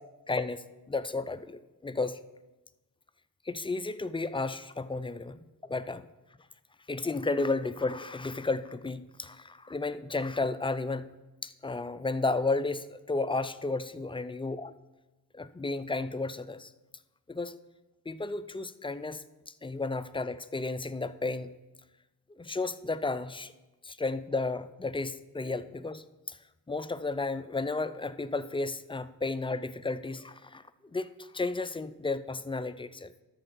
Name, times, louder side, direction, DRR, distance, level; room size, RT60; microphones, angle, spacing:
voice 1, 0.3-2.2 3.5-6.1 6.9-11.1 11.4-14.7 15.3-16.7 17.3-17.6 18.1-19.2 19.6-21.6 22.4-23.5 23.8-26.4 26.7-30.6 30.9-33.1, left 3 dB, 15° left, 13 dB, 0.4 m, -33 dB
13.0 x 4.4 x 5.6 m, 1.1 s
cardioid pair, 75°, 37 cm